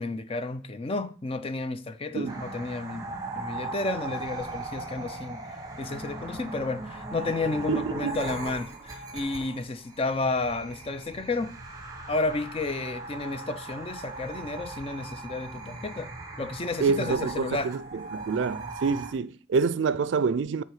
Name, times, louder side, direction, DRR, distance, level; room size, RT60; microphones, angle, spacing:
voice 1, 0.0-11.5 12.1-16.1 16.4-17.7, left 3 dB, 30° left, 0.4 m, -32 dB
sound 1, 2.3-19.1, right 2 dB, 20° right, 1.1 m, -38 dB
voice 2, 7.7-8.2 16.8-20.6, right 5 dB, 75° right, 0.4 m, -27 dB
9.3 x 4.3 x 4.8 m
head